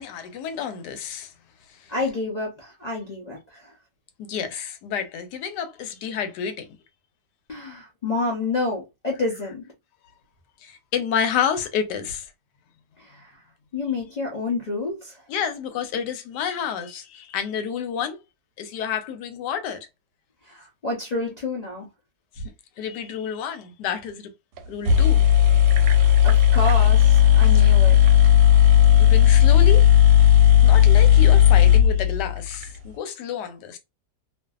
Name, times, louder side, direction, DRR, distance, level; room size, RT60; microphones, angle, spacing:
voice 1, 0.0-1.3 1.7-1.9 4.2-6.7 10.6-12.3 15.3-18.2 18.6-19.9 22.4-22.5 22.8-24.3 24.7-25.2 26.6-26.9 27.5-27.7 29.0-29.9 30.6-33.8, left 7 dB, 80° left, 1.2 m, -29 dB
voice 2, 1.9-3.7 7.5-9.6 13.0-13.4 13.7-15.2 20.4-21.9 25.9-28.1, left 2 dB, 60° left, 0.4 m, -29 dB
sound 1, 24.6-24.7 24.9-32.7, left 10 dB, 85° right, 1.2 m, -15 dB
2.7 x 2.5 x 2.3 m
omnidirectional pair, 1.8 m